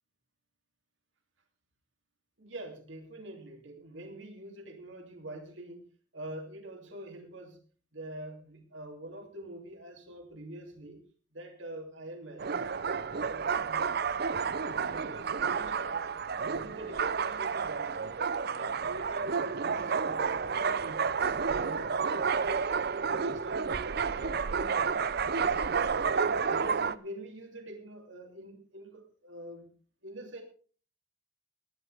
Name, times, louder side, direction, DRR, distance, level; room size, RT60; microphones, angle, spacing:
voice 1, 2.4-5.8 6.1-7.6 7.9-11.0 11.3-12.5 12.9-14.1 14.6-16.2 16.5-18.2 18.5-21.1 21.4-22.7 23.0-23.7 24.1-25.1 25.4-29.7 30.0-30.4, right 1 dB, 65° right, 4 dB, 3.0 m, -45 dB
sound 1, 12.4-26.9, right 5 dB, 50° right, 0.5 m, -30 dB
18.5 x 11.5 x 3.5 m, 0.40 s
head